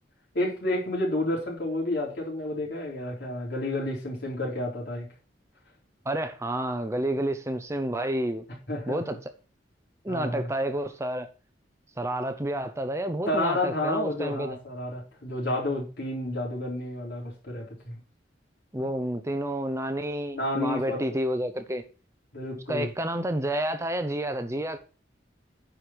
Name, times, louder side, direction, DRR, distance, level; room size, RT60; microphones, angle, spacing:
voice 1, 0.3-5.1 8.7-9.0 10.1-10.5 13.3-18.0 20.3-21.2 22.3-22.9, left 1 dB, 60° left, 4.2 m, -30 dB
voice 2, 6.0-8.4 8.9-9.3 10.0-11.3 12.0-14.6 18.7-21.8 22.7-24.8, right 1 dB, 15° right, 0.7 m, -30 dB
9.5 x 5.2 x 5.9 m
head